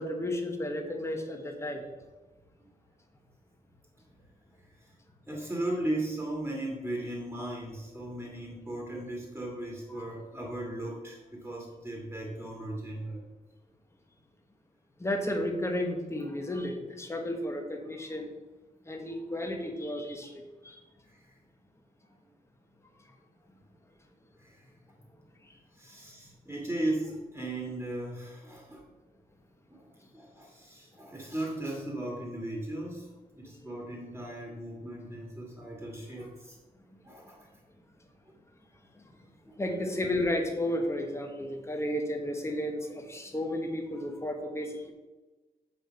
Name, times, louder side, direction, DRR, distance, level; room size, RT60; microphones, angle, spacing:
voice 1, 0.0-1.8 10.0-10.1 15.0-18.3 18.8-20.7 39.0-39.1 39.6-44.9, left 1 dB, 15° left, 3 dB, 1.2 m, -33 dB
voice 2, 4.5-4.9 5.3-13.2 21.1-21.4 24.4-24.7 25.7-28.9 29.7-36.6 37.0-37.5 38.3-38.4 39.5-39.6, right 1 dB, 10° right, -2 dB, 1.8 m, -37 dB
7.1 x 4.9 x 6.9 m, 1.2 s
wide cardioid pair, 140°, 16 cm